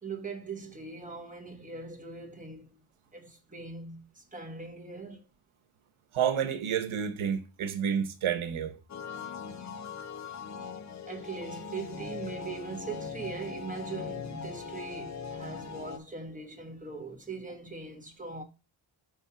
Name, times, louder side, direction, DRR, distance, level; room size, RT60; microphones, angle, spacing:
voice 1, 0.0-2.8 3.1-5.2 11.1-18.4, right 4 dB, 15° right, 1.3 m, -41 dB
voice 2, 6.1-8.7, right 8 dB, 80° right, 1.1 m, -29 dB
sound 1, 8.9-16.0, left 5 dB, 35° left, 0.6 m, -40 dB
5.6 x 3.5 x 5.6 m
wide cardioid pair, 140°, 48 cm